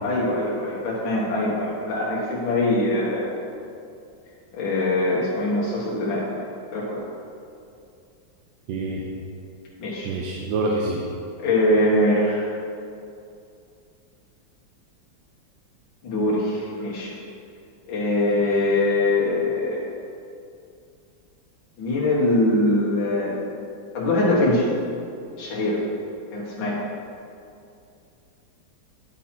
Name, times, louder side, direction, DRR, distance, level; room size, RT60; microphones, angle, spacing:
voice 1, 0.0-3.4 4.5-7.1 9.8-10.1 11.4-12.5 16.0-17.1 17.9-19.8 21.8-23.4 23.9-24.7 25.4-25.8 26.3-26.8, left 1 dB, 85° left, -5 dB, 1.7 m, -23 dB
voice 2, 8.7-9.1 10.0-11.1, right 2 dB, 85° right, -2 dB, 1.4 m, -26 dB
9.8 x 4.3 x 4.2 m, 2.5 s
omnidirectional pair, 2.1 m